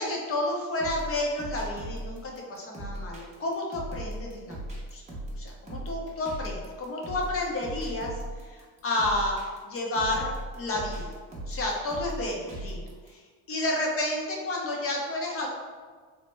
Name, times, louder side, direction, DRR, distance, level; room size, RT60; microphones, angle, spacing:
voice 1, 0.0-4.6 4.9-5.0 5.4-8.1 8.4-9.4 9.6-11.1 11.5-13.2 13.5-15.5, left 1 dB, 30° left, -1 dB, 0.6 m, -31 dB
sound 1, 0.8-13.1, right 1 dB, 15° right, 0.7 m, -38 dB
3.1 x 2.0 x 3.2 m, 1.5 s
supercardioid pair, 110°, 43 cm